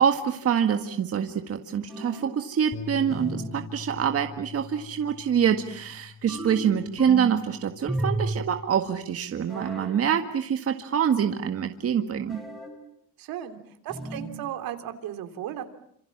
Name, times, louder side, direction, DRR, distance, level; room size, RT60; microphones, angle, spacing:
voice 1, 0.0-12.4, right 8 dB, 40° right, 6 dB, 1.8 m, -25 dB
sound 1, 1.9-2.4 3.1-3.6 6.3-7.5 7.9-8.5 9.5-10.0 12.3-12.8 13.9-14.4, right 1 dB, ahead, 5.0 m, -33 dB
Bass guitar, 2.7-9.0, left 6 dB, 25° left, 2.5 m, -44 dB
voice 2, 13.2-13.6 13.8-15.6, right 11 dB, 75° right, 8 dB, 3.4 m, -35 dB
28.5 x 27.0 x 7.3 m, 0.68 s
cardioid pair, 135°, 35 cm